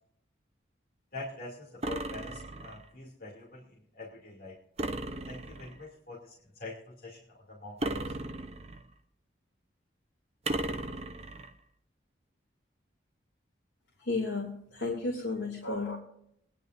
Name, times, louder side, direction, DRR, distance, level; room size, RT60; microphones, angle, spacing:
voice 1, 1.1-4.6 5.1-8.1, left 2 dB, 50° left, -6 dB, 2.7 m, -45 dB
sound 1, 1.8-2.9 4.8-5.8 7.8-8.9 10.5-11.5, right 2 dB, 35° right, 0.8 m, -36 dB
voice 2, 14.0-16.0, left 3 dB, 80° left, -1 dB, 2.7 m, -33 dB
22.5 x 11.0 x 2.6 m, 0.72 s
head